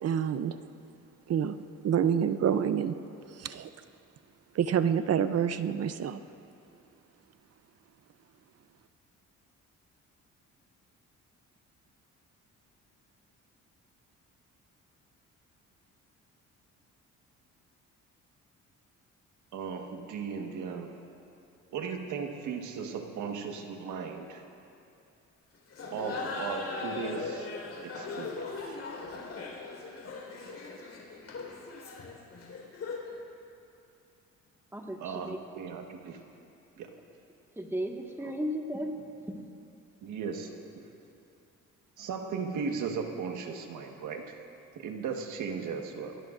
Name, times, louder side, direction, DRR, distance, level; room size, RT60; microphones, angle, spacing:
voice 1, 0.0-0.6 1.3-1.6 1.8-3.0 3.3-3.7 4.5-6.2, right 8 dB, 55° right, 11 dB, 0.7 m, -27 dB
voice 2, 19.5-21.0 21.7-24.4 25.9-27.5 27.8-28.8 35.0-36.2 36.8-36.9 38.2-38.3 40.0-40.9 42.0-44.3 44.8-46.2, right 5 dB, 80° right, 4 dB, 1.6 m, -37 dB
Laughter, 25.7-33.2, left 3 dB, 55° left, 4.5 m, -39 dB
voice 3, 34.7-35.4 37.6-39.4, equal, 10° right, 1 dB, 1.7 m, -35 dB
25.5 x 18.0 x 2.6 m, 2.6 s
cardioid pair, 90°, 30 cm